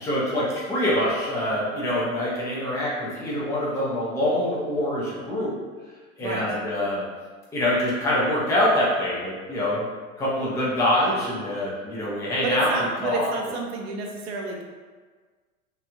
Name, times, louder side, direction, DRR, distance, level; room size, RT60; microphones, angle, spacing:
voice 1, 0.0-5.5 6.2-7.0 7.5-9.9 10.2-12.7 13.0-13.3, left 1 dB, 5° left, -6 dB, 0.4 m, -25 dB
voice 2, 6.2-6.6 12.4-14.6, right 3 dB, 50° right, 1 dB, 0.6 m, -30 dB
3.1 x 2.3 x 2.3 m, 1.5 s
figure-of-eight pair, 85°, 43 cm